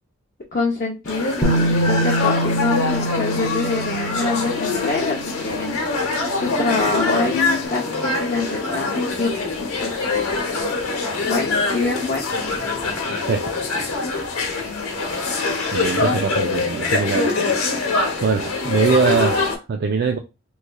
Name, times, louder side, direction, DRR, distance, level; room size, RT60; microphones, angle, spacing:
voice 1, 0.5-6.0 6.3-10.0 11.2-12.3, left 3 dB, 40° left, 0.5 m, -25 dB
sound 1, 1.1-19.6, left 3 dB, 80° left, 0.9 m, -24 dB
Bass guitar, 1.4-5.4 6.5-6.6, right 1 dB, 5° left, 0.8 m, -24 dB
voice 2, 15.7-17.3 18.2-20.2, right 5 dB, 45° right, 0.3 m, -22 dB
3.6 x 3.1 x 2.2 m
head